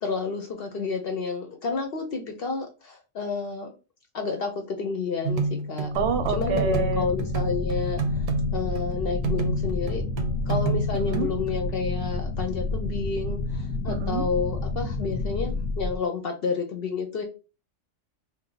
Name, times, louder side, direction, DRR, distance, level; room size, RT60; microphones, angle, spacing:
voice 1, 0.0-3.7 4.1-5.9 6.3-8.3 8.5-10.0 10.5-17.2, left 5 dB, 55° left, 3 dB, 0.7 m, -30 dB
sound 1, 5.2-11.5, right 3 dB, 85° right, 1.1 m, -29 dB
sound 2, 5.9-16.0, left 2 dB, 80° left, 1.0 m, -30 dB
voice 2, 5.9-7.0 10.9-11.3 13.9-14.3, right 5 dB, 60° right, 7 dB, 0.8 m, -27 dB
2.6 x 2.2 x 3.8 m, 0.32 s
omnidirectional pair, 1.4 m